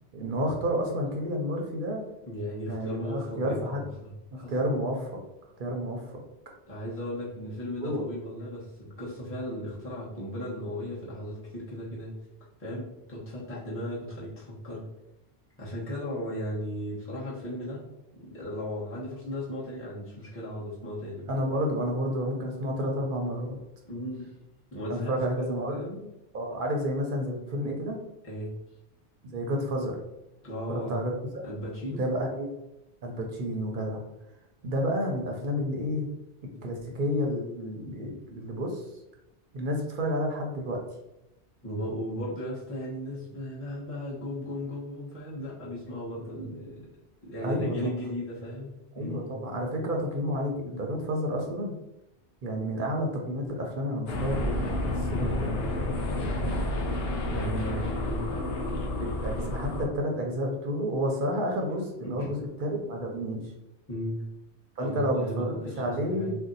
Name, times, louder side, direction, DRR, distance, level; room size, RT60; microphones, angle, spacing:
voice 1, 0.1-2.0 2.7-3.9 4.3-5.2 5.6-6.2 7.8-8.1 21.3-23.6 24.9-25.8 26.3-28.0 29.2-30.0 30.7-31.1 31.9-32.5 33.0-34.0 34.6-36.1 36.6-38.9 39.5-40.8 47.4-48.0 49.0-51.7 52.4-55.7 57.3-57.9 59.0-63.4 64.8-66.4, equal, 55° right, 1 dB, 0.6 m, -30 dB
voice 2, 2.3-4.1 4.4-4.5 6.7-12.1 12.6-14.8 15.6-17.8 18.2-21.3 23.9-24.3 24.7-26.0 28.2-28.5 30.4-30.9 31.4-32.1 36.5-36.7 41.6-46.9 47.2-49.3 56.1-56.4 57.2-58.3 62.2-62.3 63.9-64.2 64.8-66.3, equal, 15° left, -7 dB, 0.8 m, -36 dB
sound 1, 54.1-59.9, left 1 dB, 65° left, 0.8 m, -30 dB
2.6 x 2.1 x 3.8 m, 0.91 s
omnidirectional pair, 1.2 m